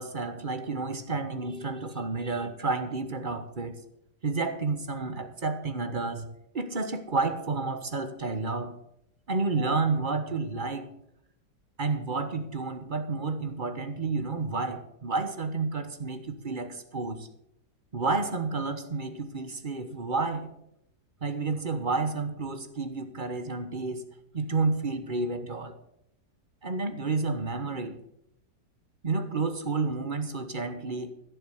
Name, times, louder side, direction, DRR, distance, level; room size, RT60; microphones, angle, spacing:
voice 1, 0.0-3.8 4.2-6.3 6.5-8.8 9.3-10.9 11.8-17.3 17.9-20.5 21.2-24.1 24.3-25.7 26.6-28.0 29.0-31.1, right 3 dB, 35° right, 8 dB, 1.1 m, -30 dB
15.5 x 7.0 x 7.8 m, 0.79 s
omnidirectional pair, 1.8 m